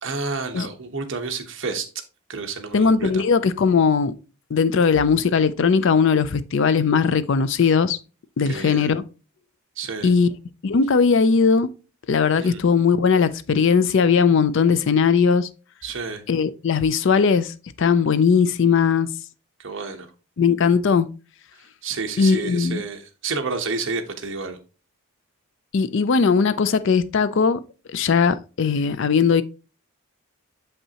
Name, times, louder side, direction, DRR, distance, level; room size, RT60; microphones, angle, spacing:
voice 1, 0.0-1.9 2.3-3.2 8.5-8.9 9.8-10.1 12.4-12.6 15.8-16.2 19.6-20.1 21.8-24.6, right 4 dB, 55° right, 0.9 m, -30 dB
voice 2, 2.7-4.1 4.5-8.0 8.4-9.0 10.0-10.3 10.6-11.7 12.1-15.5 16.3-19.1 20.4-21.1 22.2-22.8 25.7-27.6 27.9-29.4, left 5 dB, 55° left, 0.4 m, -19 dB
7.2 x 5.5 x 2.8 m
head